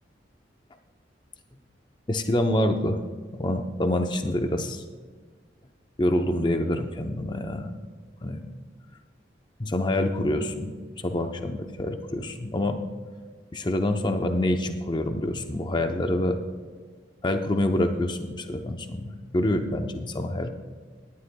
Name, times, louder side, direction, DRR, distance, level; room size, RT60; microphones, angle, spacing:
voice 1, 2.1-3.0 3.3-4.8 6.0-7.7 8.2-8.4 9.6-10.7 11.0-12.8 13.5-16.4 17.2-20.5, left 1 dB, 25° left, 6 dB, 0.6 m, -26 dB
17.5 x 11.5 x 2.3 m, 1.5 s
head